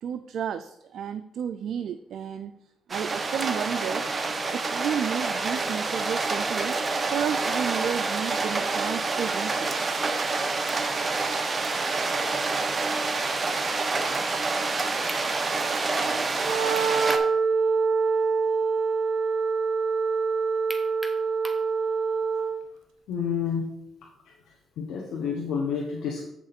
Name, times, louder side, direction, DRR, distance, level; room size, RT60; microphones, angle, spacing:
voice 1, 0.0-2.6 2.9-4.1 4.5-6.8 7.1-10.1, right 8 dB, 70° right, 10 dB, 0.3 m, -32 dB
sound 1, 2.9-17.2, right 3 dB, 30° right, 0.8 m, -27 dB
sound 2, 15.1-15.3 16.8-17.3 17.7-17.8 20.7-21.7, equal, 5° right, 1.0 m, -38 dB
Wind instrument woodwind instrument, 16.3-22.6, right 5 dB, 85° right, 1.0 m, -25 dB
voice 2, 23.1-23.7 24.8-26.3, left 6 dB, 80° left, -2 dB, 1.2 m, -29 dB
7.7 x 6.0 x 4.3 m, 0.81 s
cardioid pair, 90°, 0 cm